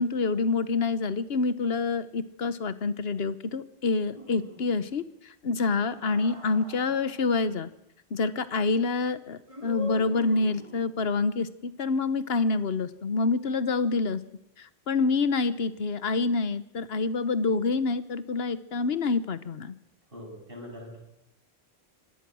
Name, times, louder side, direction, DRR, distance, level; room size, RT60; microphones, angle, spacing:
voice 1, 0.0-5.0 5.4-7.7 8.1-14.2 14.6-19.7, left 4 dB, 70° left, 14 dB, 1.3 m, -27 dB
sound 1, 4.1-5.0 5.7-7.5 9.5-11.0, left 1 dB, 30° right, 2.0 m, -44 dB
voice 2, 20.1-21.0, left 1 dB, 60° right, -1 dB, 7.9 m, -42 dB
25.5 x 18.0 x 6.3 m, 0.85 s
omnidirectional pair, 1.1 m